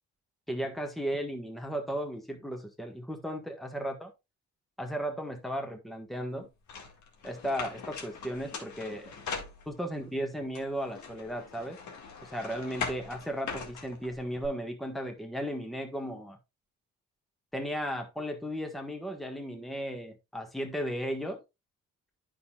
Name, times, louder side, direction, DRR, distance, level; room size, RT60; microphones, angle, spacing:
voice 1, 0.5-4.1 4.8-6.5 7.2-9.1 9.7-11.8 12.3-16.4 17.5-21.4, equal, ahead, 1.4 m, -35 dB
sound 1, 6.7-10.0 10.5-14.5, left 5 dB, 70° left, 1.9 m, -41 dB
9.4 x 6.0 x 2.3 m
cardioid pair, 90°, 30 cm